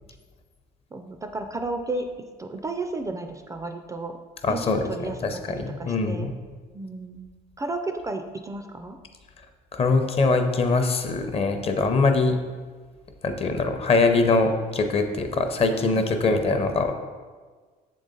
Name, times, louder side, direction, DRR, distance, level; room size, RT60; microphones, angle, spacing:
voice 1, 0.9-2.1 2.4-4.2 4.5-5.2 5.8-6.4 6.7-7.3 7.6-9.0 15.8-16.2, right 2 dB, 20° right, 6 dB, 0.3 m, -33 dB
voice 2, 4.4-6.3 9.7-12.4 13.2-16.9, left 3 dB, 35° left, 6 dB, 0.6 m, -23 dB
6.9 x 3.9 x 3.8 m, 1.5 s
cardioid pair, 110°, 17 cm